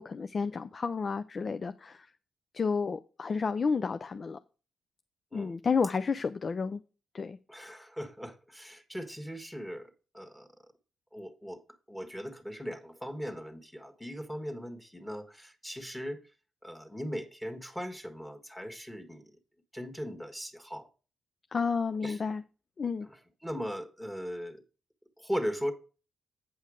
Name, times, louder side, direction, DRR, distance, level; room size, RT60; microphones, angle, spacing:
voice 1, 0.0-2.1 2.5-4.4 5.3-6.8 7.1-7.4 21.5-22.4 22.8-23.1, left 5 dB, 45° left, 0.4 m, -31 dB
voice 2, 7.5-10.5 11.1-11.6 11.9-16.2 16.6-19.3 19.7-20.9 22.0-22.2 23.4-24.6 25.2-25.7, equal, 5° left, 1.5 m, -38 dB
8.5 x 5.6 x 4.9 m
cardioid pair, 65°, 0 cm